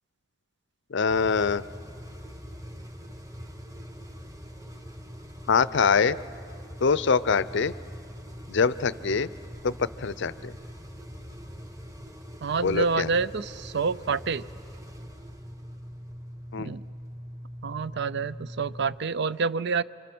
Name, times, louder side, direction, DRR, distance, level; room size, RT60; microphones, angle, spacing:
voice 1, 0.9-1.6 5.5-6.2 6.8-7.7 8.5-9.3 9.6-10.5 12.6-13.1 16.5-16.7, left 5 dB, 65° left, 17 dB, 0.6 m, -24 dB
sound 1, 1.1-19.0, equal, 15° right, 1.4 m, -43 dB
voice 2, 12.4-14.4 16.6-16.8 17.6-19.8, right 5 dB, 60° right, 17 dB, 0.5 m, -28 dB
28.5 x 26.0 x 6.1 m, 2.3 s
head